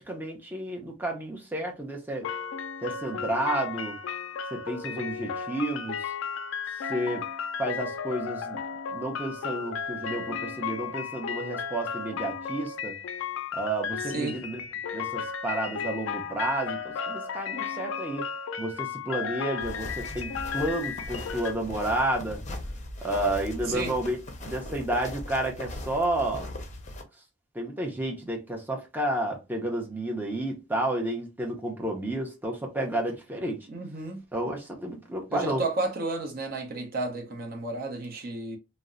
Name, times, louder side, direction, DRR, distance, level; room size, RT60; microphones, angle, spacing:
voice 1, 0.0-2.3 2.8-4.0 4.5-6.1 6.9-7.2 7.6-8.6 8.9-13.0 13.5-14.6 14.9-18.3 18.6-22.4 23.0-26.5 27.5-33.7 34.3-35.6, right 1 dB, 10° right, 0.6 m, -31 dB
sound 1, 2.2-21.5, left 6 dB, 85° left, 0.3 m, -34 dB
sound 2, 19.6-27.0, left 1 dB, 35° left, 0.5 m, -39 dB
voice 2, 33.7-34.2 35.3-38.6, right 2 dB, 50° right, 0.6 m, -32 dB
2.8 x 2.0 x 2.4 m
head